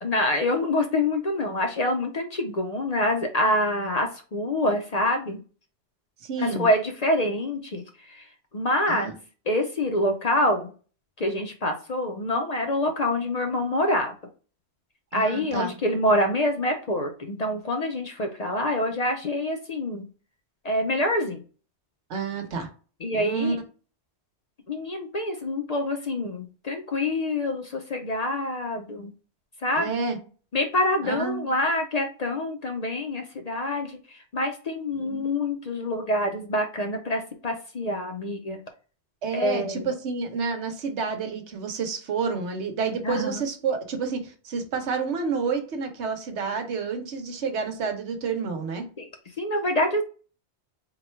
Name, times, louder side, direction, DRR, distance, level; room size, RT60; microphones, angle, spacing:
voice 1, 0.0-5.4 6.4-8.3 8.5-9.1 9.5-10.7 11.2-14.1 15.1-20.1 20.6-21.4 23.0-23.6 24.7-29.1 29.6-30.0 30.5-38.6 39.3-39.9 43.0-43.4 49.0-49.1 49.4-50.0, left 1 dB, 45° left, 4 dB, 0.6 m, -26 dB
voice 2, 6.2-6.7 8.9-9.1 15.1-15.7 22.1-22.7 23.1-23.5 29.7-30.2 31.0-31.5 34.9-35.3 39.2-48.9, right 5 dB, 85° right, 5 dB, 1.2 m, -29 dB
3.9 x 2.3 x 4.3 m, 0.37 s
omnidirectional pair, 1.1 m